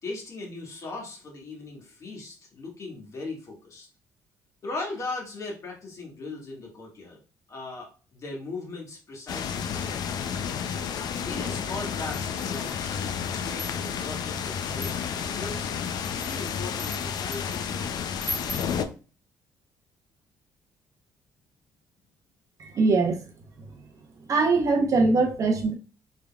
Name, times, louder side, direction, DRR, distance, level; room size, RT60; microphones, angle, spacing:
voice 1, 0.0-3.9 4.6-7.2 7.5-10.2 11.2-15.7 16.1-18.2, left 3 dB, 45° left, 1.7 m, -38 dB
sound 1, 9.3-18.9, left 7 dB, 60° left, 0.4 m, -31 dB
sound 2, 12.1-12.9 13.4-14.1 14.7-15.3 15.9-17.6 18.2-18.8, equal, ahead, 0.4 m, -39 dB
voice 2, 22.6-23.2 24.3-25.7, right 3 dB, 45° right, 0.8 m, -22 dB
3.7 x 3.4 x 2.3 m
cardioid pair, 100°, 8 cm